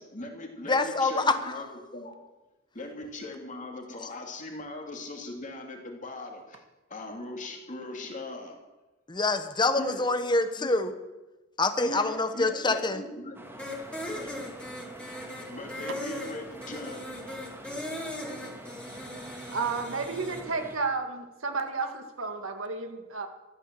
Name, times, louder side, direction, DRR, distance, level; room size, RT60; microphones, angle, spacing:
voice 1, 0.0-2.1 2.7-6.6 6.9-8.6 9.8-10.0 10.6-10.8 11.8-13.4 14.9-15.0 15.5-17.0, left 2 dB, 40° left, 2 dB, 2.9 m, -40 dB
voice 2, 0.7-1.5 9.1-10.9 11.6-13.0, left 3 dB, 20° left, 9 dB, 1.1 m, -26 dB
sound 1, 13.3-20.8, equal, 10° right, 2.1 m, -45 dB
sound 2, 13.6-20.4, left 1 dB, 5° left, 2.6 m, -38 dB
voice 3, 19.5-23.3, right 4 dB, 80° right, 5 dB, 1.9 m, -32 dB
14.0 x 12.0 x 7.6 m, 1.1 s
head